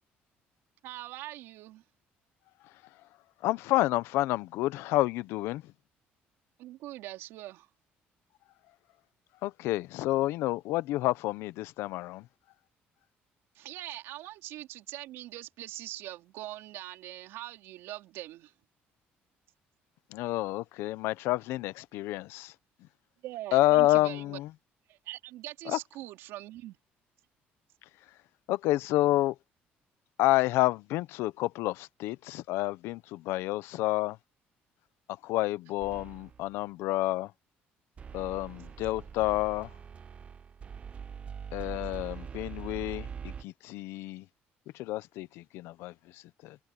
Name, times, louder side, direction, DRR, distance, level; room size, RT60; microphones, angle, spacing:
voice 1, 0.8-1.8 6.6-7.7 13.5-18.5 23.2-24.4 24.9-26.8, right 15 dB, 85° right, 4.4 m, -42 dB
voice 2, 3.4-5.7 9.4-12.3 20.1-22.5 23.5-24.5 25.7-25.8 28.5-29.3 30.2-34.2 35.2-37.3 38.1-39.7 41.5-44.2 44.7-46.6, left 17 dB, 85° left, 0.8 m, -29 dB
sound 1, 35.8-36.5 38.0-43.4, right 7 dB, 30° right, 0.8 m, -43 dB
cardioid pair, 140°, 4 cm